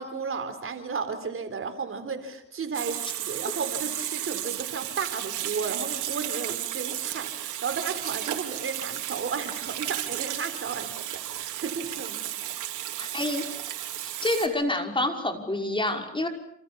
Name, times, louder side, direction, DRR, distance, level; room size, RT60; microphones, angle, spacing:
voice 1, 0.0-12.2, right 5 dB, 45° right, 9 dB, 4.0 m, -34 dB
Water tap faucet / Sink (filling or washing), 2.7-14.5, right 12 dB, 85° right, 4.2 m, -33 dB
voice 2, 13.0-13.4 14.0-16.3, left 1 dB, 15° left, 4 dB, 5.7 m, -27 dB
29.0 x 27.5 x 7.1 m, 0.70 s
cardioid pair, 90°, 30 cm